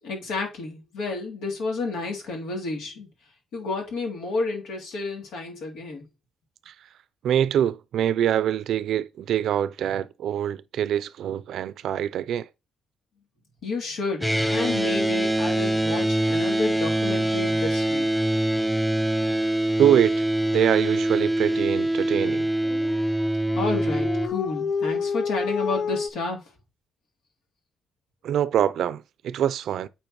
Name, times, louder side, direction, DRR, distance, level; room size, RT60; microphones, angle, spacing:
voice 1, 0.0-3.1 3.5-6.0 13.6-18.1 23.5-26.5, left 3 dB, 85° left, 3.0 m, -31 dB
voice 2, 7.2-12.5 19.8-20.1 20.5-22.5 28.2-29.9, right 10 dB, 75° right, 0.5 m, -24 dB
sound 1, 14.2-24.3, right 1 dB, 5° left, 1.1 m, -24 dB
Dog, 22.6-26.1, left 6 dB, 50° left, 0.4 m, -29 dB
8.9 x 4.4 x 3.0 m
cardioid pair, 90°, 0 cm